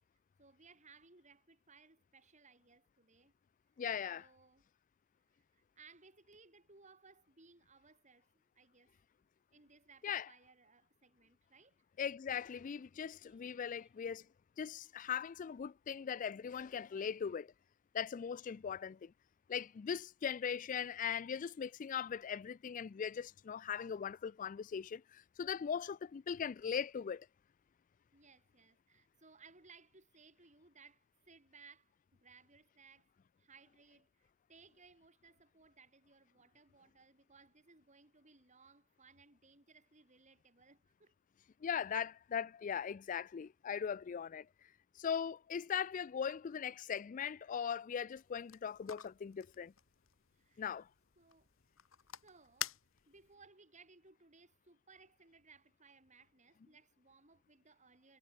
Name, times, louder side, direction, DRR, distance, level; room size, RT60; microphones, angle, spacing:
voice 1, 0.4-3.3 4.1-4.7 5.5-8.9 9.5-11.8 13.2-13.9 28.1-33.1 33.4-41.1 50.3-50.7 51.2-51.5 52.1-52.8 53.1-58.2, right 4 dB, 35° right, 4.0 m, -63 dB
voice 2, 3.8-4.3 10.0-10.3 12.0-14.3 14.6-17.5 17.9-19.1 19.5-27.3 41.6-49.7 50.6-50.9, left 7 dB, 40° left, 0.3 m, -40 dB
sound 1, 48.1-53.4, left 10 dB, 90° left, 3.4 m, -49 dB
head